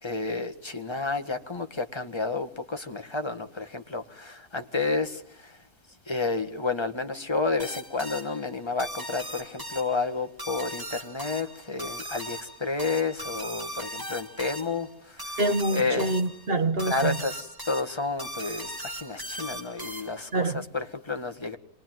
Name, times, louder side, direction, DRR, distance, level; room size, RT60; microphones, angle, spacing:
voice 1, 0.0-5.6 6.1-15.4 15.7-16.1 16.8-21.6, left 3 dB, 15° left, 1.7 m, -31 dB
sound 1, 7.6-20.4, right 1 dB, 10° right, 2.3 m, -39 dB
voice 2, 15.4-17.2 20.3-20.6, right 2 dB, 35° right, 1.9 m, -26 dB
27.5 x 22.0 x 9.3 m
omnidirectional pair, 1.8 m